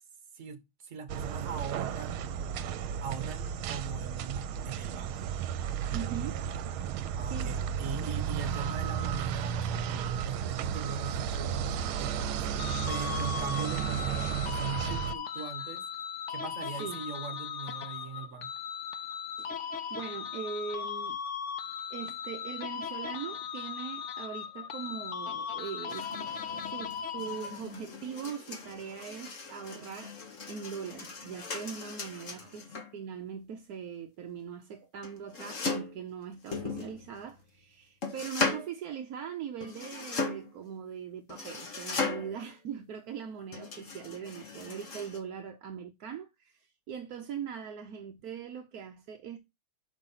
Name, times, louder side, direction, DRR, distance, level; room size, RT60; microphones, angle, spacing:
voice 1, 0.3-2.3 3.0-5.3 7.2-12.4 12.9-15.8 16.3-18.5 32.3-32.6, right 6 dB, 45° right, 1.4 m, -40 dB
sound 1, 1.1-15.1, right 8 dB, 80° right, 1.5 m, -33 dB
voice 2, 5.9-6.4 7.2-7.5 14.1-14.2 16.8-17.0 19.4-19.6 19.9-21.2 21.9-30.1 30.5-49.4, right 7 dB, 60° right, 1.0 m, -41 dB
sound 2, 12.6-27.8, left 7 dB, 80° left, 0.6 m, -38 dB
sound 3, 25.9-32.9 35.0-36.0 36.5-37.4 38.0-38.7 39.6-40.6 41.3-42.4 43.5-45.2, left 3 dB, 40° left, 1.5 m, -37 dB
6.0 x 5.1 x 5.6 m
omnidirectional pair, 2.3 m